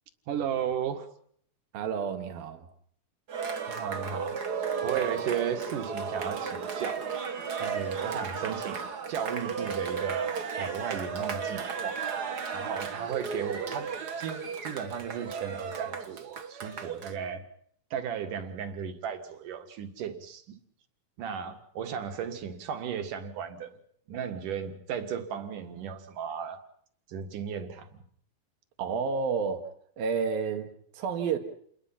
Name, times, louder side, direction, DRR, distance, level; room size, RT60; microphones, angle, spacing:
voice 1, 0.3-1.1 3.7-4.4 4.8-7.1 7.6-12.1 12.5-13.9 14.1-17.5 17.9-20.6 21.2-23.7 24.1-26.6 27.1-28.0, right 8 dB, 65° right, 3.3 m, -35 dB
voice 2, 1.7-2.7 28.8-29.7 30.0-31.4, right 5 dB, 90° right, 3.7 m, -30 dB
Cheering, 3.3-17.1, right 6 dB, 50° right, 1.2 m, -34 dB
29.0 x 21.0 x 5.9 m
omnidirectional pair, 4.1 m